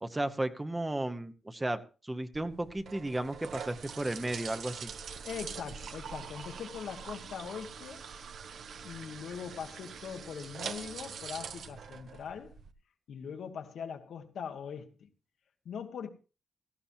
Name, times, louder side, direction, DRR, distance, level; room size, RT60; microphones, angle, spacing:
voice 1, 0.0-4.9, right 1 dB, 15° right, 1.0 m, -34 dB
sound 1, 2.3-12.7, right 6 dB, 70° right, 1.2 m, -44 dB
voice 2, 5.2-8.0 8.8-12.6 13.1-15.1 15.6-16.1, left 7 dB, 75° left, 1.6 m, -41 dB
17.0 x 15.0 x 2.8 m
wide cardioid pair, 135°, 0 cm